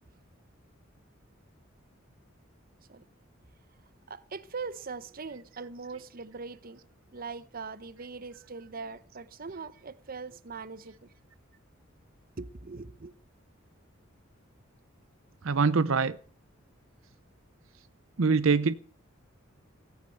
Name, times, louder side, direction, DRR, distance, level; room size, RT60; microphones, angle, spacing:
voice 1, 4.1-11.1 12.4-13.1, right 4 dB, 45° right, 0.9 m, -41 dB
voice 2, 15.4-16.2 18.2-18.7, right 4 dB, 75° right, 0.7 m, -24 dB
17.0 x 9.1 x 7.8 m
head